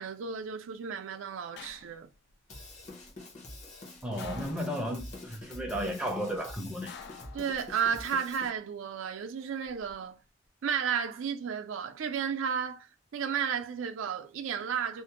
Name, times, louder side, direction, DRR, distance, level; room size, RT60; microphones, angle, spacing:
voice 1, 0.0-2.1 7.3-10.2 10.6-15.0, right 7 dB, 90° right, 0.4 m, -33 dB
sound 1, 1.6-2.3 4.2-5.1 6.9-8.0 9.4-9.9, left 6 dB, 60° left, 0.3 m, -49 dB
Drum kit / Drum, 2.5-8.5, left 1 dB, 40° left, 0.8 m, -46 dB
voice 2, 4.0-7.0, equal, 5° right, 0.5 m, -34 dB
2.5 x 2.0 x 2.8 m
head